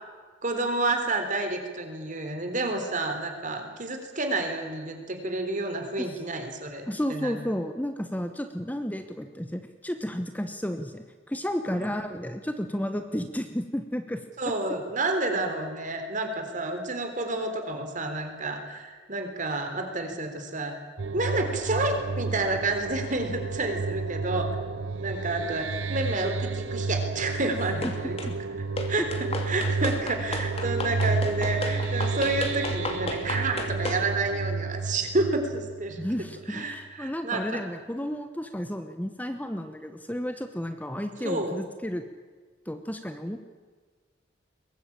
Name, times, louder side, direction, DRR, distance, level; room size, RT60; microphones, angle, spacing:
voice 1, 0.4-7.4 11.7-11.9 14.4-20.7 21.1-24.6 25.0-28.2 28.9-36.0 36.5-37.6 41.2-41.6, right 2 dB, 45° right, 5 dB, 3.7 m, -30 dB
voice 2, 6.8-14.2 28.3-28.4 29.0-29.1 36.0-42.0 42.7-43.4, equal, 10° left, 7 dB, 1.1 m, -32 dB
sound 1, 21.0-36.4, right 4 dB, 90° right, 0.7 m, -31 dB
sound 2, 27.8-28.3 28.8-34.1, left 2 dB, 35° left, 2.8 m, -34 dB
22.5 x 19.0 x 8.7 m, 1.5 s
head